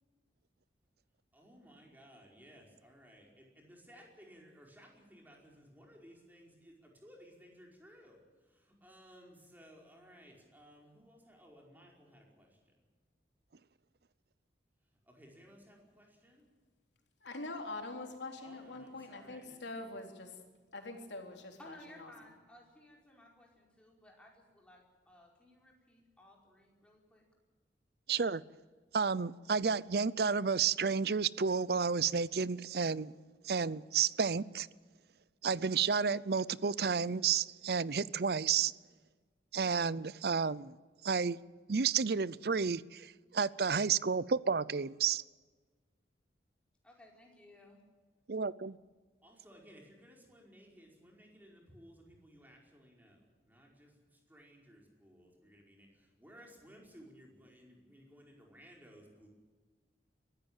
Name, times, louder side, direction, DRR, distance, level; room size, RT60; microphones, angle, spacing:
voice 1, 1.3-12.6 15.1-16.5 18.4-19.9 49.2-59.3, equal, 10° right, 4.9 m, -58 dB
voice 2, 17.2-20.3 20.7-21.6, left 2 dB, 85° left, 3.7 m, -43 dB
voice 3, 21.6-27.2 46.8-47.8, left 1 dB, 5° left, 4.8 m, -58 dB
voice 4, 28.1-28.4 28.9-33.1 33.4-34.7 35.4-38.7 39.5-40.7 41.0-41.4 41.7-45.2 48.3-48.8, right 6 dB, 60° right, 0.6 m, -31 dB
22.5 x 15.0 x 8.9 m
head